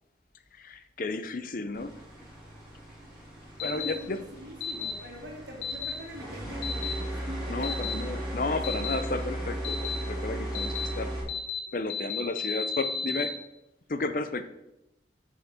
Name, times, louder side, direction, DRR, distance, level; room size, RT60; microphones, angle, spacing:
voice 1, 0.5-2.0 3.6-4.2 7.1-11.1 11.7-13.3 13.9-14.4, left 3 dB, 45° left, 11 dB, 0.5 m, -33 dB
sound 1, 1.7-11.2, right 1 dB, 5° right, 2.6 m, -36 dB
sound 2, 3.6-3.9 4.6-4.9 5.6-5.9 6.6-6.9 7.6-7.9 8.6-8.9 9.6-10.0 10.5-10.9 11.3-11.6 11.9-13.3, left 6 dB, 75° left, 1.4 m, -32 dB
voice 2, 3.7-4.1 4.4-7.8 8.5-9.1, right 1 dB, 80° right, -1 dB, 2.3 m, -44 dB
6.4 x 5.7 x 6.4 m, 0.91 s
head